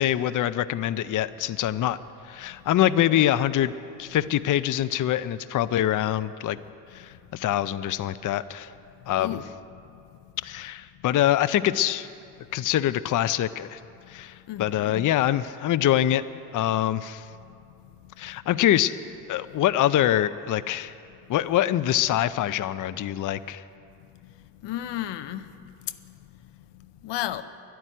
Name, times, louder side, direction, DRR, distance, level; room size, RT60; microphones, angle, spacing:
voice 1, 0.0-2.0 2.3-3.7 4.0-6.6 6.9-8.7 9.1-9.4 10.4-12.1 12.5-13.8 14.1-16.2 16.5-17.3 18.2-19.0 19.3-20.9 21.3-23.6, left 12 dB, 50° left, 13 dB, 0.5 m, -24 dB
voice 2, 9.2-9.5 14.5-15.1 24.6-25.5 27.0-27.4, left 13 dB, 85° left, 11 dB, 0.6 m, -32 dB
12.0 x 9.3 x 10.0 m, 2.6 s
cardioid pair, 90°, 41 cm